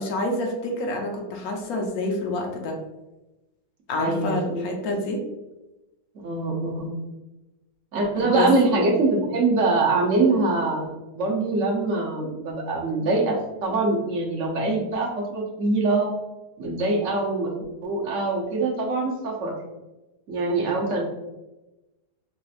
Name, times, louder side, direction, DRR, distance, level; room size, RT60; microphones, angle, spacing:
voice 1, 0.0-2.8 3.9-5.2 8.2-8.5, left 1 dB, 65° left, 1 dB, 1.1 m, -27 dB
voice 2, 4.0-4.6 6.2-7.1 7.9-13.3 13.6-16.1 16.6-17.5 17.8-19.5 20.3-21.0, right 3 dB, 55° right, -2 dB, 1.0 m, -24 dB
4.0 x 3.0 x 2.4 m, 1.0 s
omnidirectional pair, 1.8 m